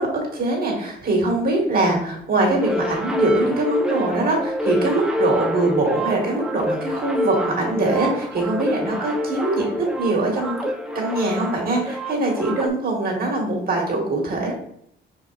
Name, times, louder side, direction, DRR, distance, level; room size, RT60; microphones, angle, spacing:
voice 1, 0.0-10.6 10.9-14.5, right 2 dB, 50° right, 0 dB, 1.5 m, -22 dB
sound 1, 2.6-12.7, equal, 5° right, 0.5 m, -27 dB
4.4 x 3.7 x 2.4 m, 0.71 s
cardioid pair, 90°, 20 cm